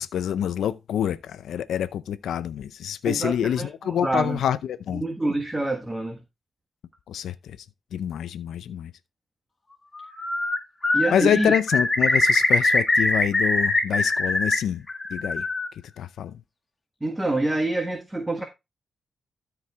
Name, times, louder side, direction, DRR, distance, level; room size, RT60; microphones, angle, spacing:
voice 1, 0.0-5.0 7.1-7.6 7.9-8.9 11.1-14.8 15.1-15.5 16.0-16.4, left 9 dB, 85° left, 0.6 m, -26 dB
voice 2, 3.0-4.4 5.0-6.2 10.9-11.5 17.0-18.4, right 2 dB, 15° right, 1.4 m, -26 dB
Bird, 10.0-10.6 10.8-14.6 14.9-15.7, left 2 dB, 25° left, 2.2 m, -22 dB
13.0 x 4.8 x 3.5 m
cardioid pair, 95°, 0 cm